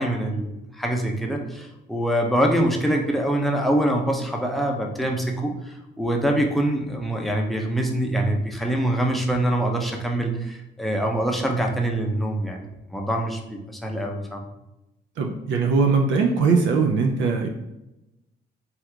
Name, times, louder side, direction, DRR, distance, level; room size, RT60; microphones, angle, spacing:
voice 1, 0.0-14.5, right 1 dB, ahead, 1 dB, 0.5 m, -24 dB
voice 2, 15.2-17.5, right 4 dB, 70° right, 2 dB, 0.5 m, -20 dB
2.8 x 2.4 x 3.4 m, 0.95 s
cardioid pair, 90°, 20 cm